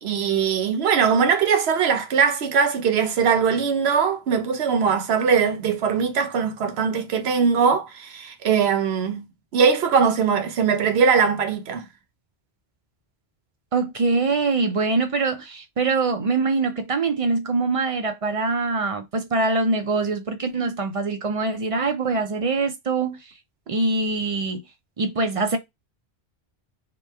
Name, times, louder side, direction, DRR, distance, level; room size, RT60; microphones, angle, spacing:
voice 1, 0.0-9.3 9.5-11.8, right 6 dB, 80° right, 0.9 m, -21 dB
voice 2, 13.7-23.2 23.7-24.6 25.0-25.6, right 3 dB, 45° right, 0.5 m, -23 dB
2.9 x 2.2 x 3.2 m
omnidirectional pair, 1.1 m